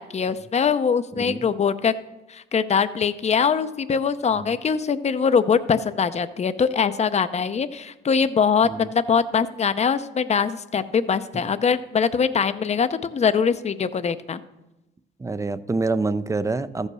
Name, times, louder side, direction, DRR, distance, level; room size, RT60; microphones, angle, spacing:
voice 1, 0.0-1.9 2.3-14.4, left 6 dB, 35° left, 12 dB, 0.6 m, -22 dB
voice 2, 1.2-1.5 4.4-4.6 8.6-8.9 15.2-16.9, right 3 dB, 15° right, 15 dB, 0.5 m, -26 dB
14.0 x 5.5 x 6.2 m, 0.99 s
cardioid pair, 90°, 20 cm